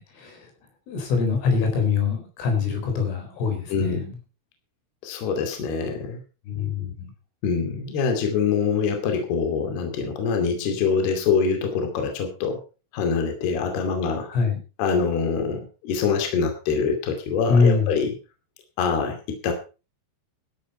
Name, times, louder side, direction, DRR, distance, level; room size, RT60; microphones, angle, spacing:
voice 1, 0.2-0.5 0.9-4.1 6.5-7.1 14.3-14.6 17.5-18.0, left 5 dB, 80° left, 5 dB, 6.7 m, -23 dB
voice 2, 3.7-4.0 5.0-6.2 7.4-12.6 12.9-14.3 14.8-18.1 18.8-19.5, left 5 dB, 55° left, 4 dB, 4.1 m, -24 dB
13.0 x 11.0 x 5.4 m, 0.33 s
omnidirectional pair, 5.7 m